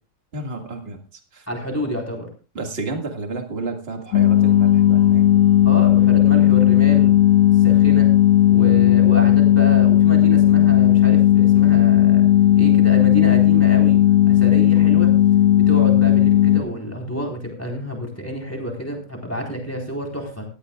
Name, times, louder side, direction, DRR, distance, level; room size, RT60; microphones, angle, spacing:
voice 1, 0.3-1.0 1.3-1.4 2.6-5.3, right 3 dB, 35° right, 3 dB, 2.2 m, -31 dB
voice 2, 1.5-2.3 5.6-7.1 7.6-8.1 8.5-12.3 12.6-14.0 14.3-15.1 15.7-20.5, equal, 10° left, 0 dB, 4.2 m, -29 dB
sound 1, 4.1-16.6, left 12 dB, 90° left, 2.2 m, -14 dB
18.5 x 14.0 x 2.4 m, 0.34 s
omnidirectional pair, 1.8 m